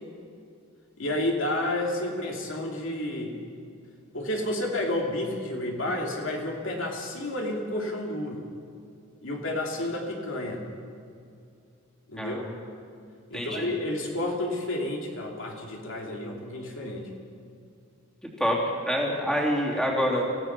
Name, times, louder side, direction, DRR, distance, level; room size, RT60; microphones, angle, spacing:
voice 1, 1.0-3.4 4.1-8.4 9.2-10.6 12.1-12.4 13.3-17.1, left 1 dB, 60° left, 0 dB, 2.9 m, -30 dB
voice 2, 12.2-12.5 13.3-13.7 18.4-18.6 18.9-20.2, equal, 5° left, -3 dB, 3.1 m, -26 dB
27.5 x 16.0 x 6.1 m, 2.5 s
head